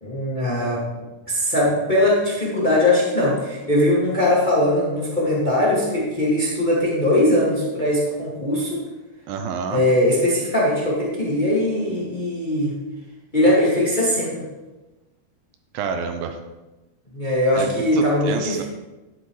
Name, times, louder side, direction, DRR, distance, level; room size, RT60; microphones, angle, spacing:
voice 1, 0.0-8.8 9.7-12.8 13.3-14.4 17.1-18.6, left 1 dB, 65° left, -6 dB, 0.4 m, -20 dB
voice 2, 9.3-9.8 15.7-16.4 17.6-18.6, right 6 dB, 80° right, 6 dB, 2.2 m, -28 dB
11.5 x 9.3 x 3.2 m, 1.1 s
omnidirectional pair, 4.9 m